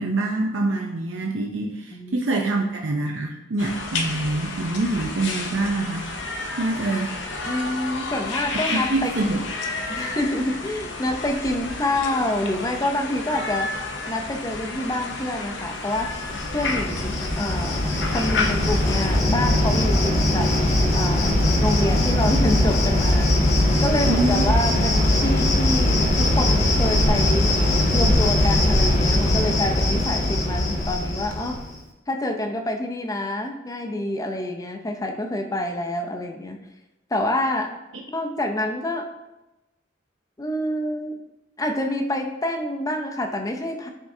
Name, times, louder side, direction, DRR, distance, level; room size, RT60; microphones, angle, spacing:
voice 1, 0.0-6.1 6.6-7.1 8.5-9.4 24.1-24.5, right 2 dB, 75° right, 0 dB, 0.6 m, -25 dB
voice 2, 1.9-2.5 7.5-9.1 9.9-13.7 14.1-16.1 16.5-17.9 18.1-20.5 20.9-27.5 27.9-31.6 32.1-36.6 37.1-37.7 38.1-39.1 40.4-41.2 41.6-43.9, left 1 dB, 20° left, 3 dB, 0.5 m, -27 dB
sound 1, 3.6-19.2, left 3 dB, 65° left, 0.7 m, -31 dB
Cricket, 16.0-31.7, left 1 dB, 40° left, 1.0 m, -21 dB
11.0 x 3.6 x 2.7 m, 1.0 s
head